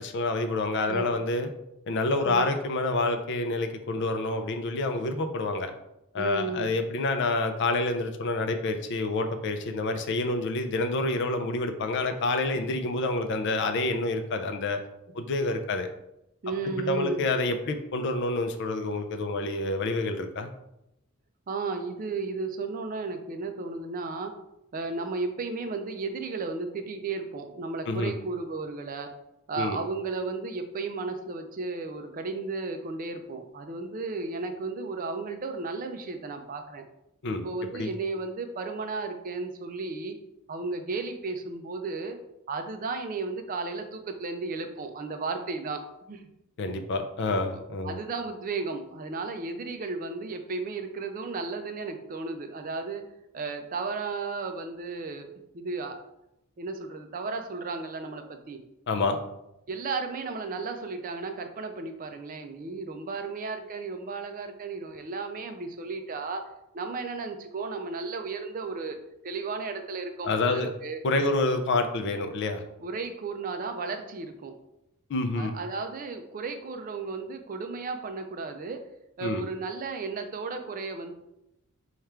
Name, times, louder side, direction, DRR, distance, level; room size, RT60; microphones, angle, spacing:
voice 1, 0.0-1.5 1.9-5.7 6.1-14.8 15.1-15.9 16.9-20.5 27.9-28.1 29.6-29.8 37.2-37.4 37.7-37.9 46.6-48.0 58.9-59.2 70.2-70.7 71.0-72.6 75.1-75.6 79.2-79.4, left 2 dB, 55° left, 7 dB, 0.4 m, -28 dB
voice 2, 6.2-6.7 12.5-12.6 16.4-17.2 21.5-24.3 24.7-29.1 29.5-36.8 37.4-40.2 40.5-42.2 42.5-45.8 46.1-46.2 47.5-53.0 53.3-55.3 55.5-56.0 56.6-58.6 59.7-66.5 66.7-69.0 69.2-71.3 72.8-74.5 75.4-78.8 79.2-81.1, right 4 dB, 40° right, 6 dB, 0.4 m, -34 dB
3.4 x 2.4 x 4.3 m, 0.85 s
head